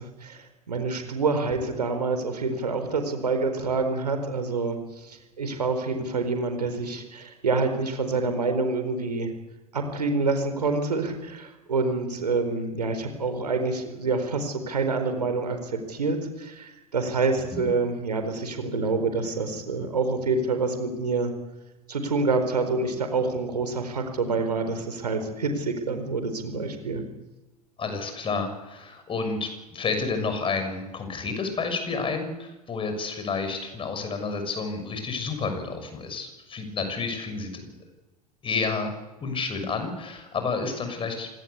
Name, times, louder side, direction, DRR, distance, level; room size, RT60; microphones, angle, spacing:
voice 1, 0.0-9.3 9.7-21.3 21.9-27.0, right 3 dB, 85° right, 7 dB, 4.5 m, -27 dB
voice 2, 27.8-37.8 38.4-38.9 39.2-41.3, left 4 dB, 25° left, 7 dB, 6.7 m, -30 dB
26.0 x 18.5 x 8.4 m, 1.1 s
hypercardioid pair, 90°, 20 cm